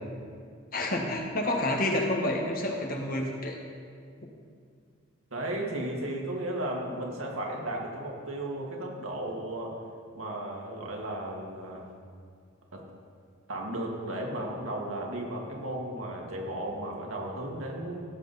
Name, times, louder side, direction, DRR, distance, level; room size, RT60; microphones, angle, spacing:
voice 1, 0.7-3.6, left 1 dB, 45° left, 1 dB, 1.5 m, -29 dB
voice 2, 5.3-9.7 10.1-11.9 12.7-12.8 13.5-18.0, right 1 dB, 85° right, -1 dB, 1.9 m, -35 dB
16.0 x 7.5 x 4.1 m, 2.1 s
head